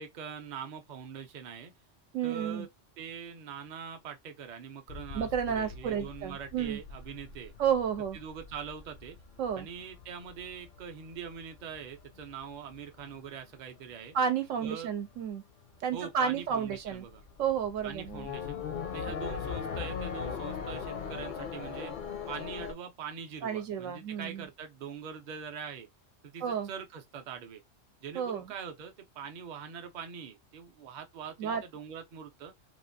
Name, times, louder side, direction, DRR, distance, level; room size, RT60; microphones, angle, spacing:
voice 1, 0.0-1.7 2.2-2.7 3.0-7.5 8.1-9.2 9.6-14.2 14.6-14.9 15.9-17.2 17.8-18.6 18.9-21.9 22.3-25.9 26.2-27.6 28.0-32.5, right 7 dB, 50° right, 0.6 m, -43 dB
voice 2, 2.1-2.7 5.1-6.8 7.6-8.2 9.4-9.7 14.1-15.4 15.8-17.0 17.4-18.3 23.4-24.5 26.4-26.7 28.1-28.5 31.4-31.6, right 8 dB, 90° right, 1.0 m, -31 dB
sound 1, 4.9-13.8 14.1-14.8 15.1-15.3 15.6-22.7, left 6 dB, 55° left, 0.6 m, -41 dB
3.0 x 2.5 x 2.5 m
omnidirectional pair, 1.3 m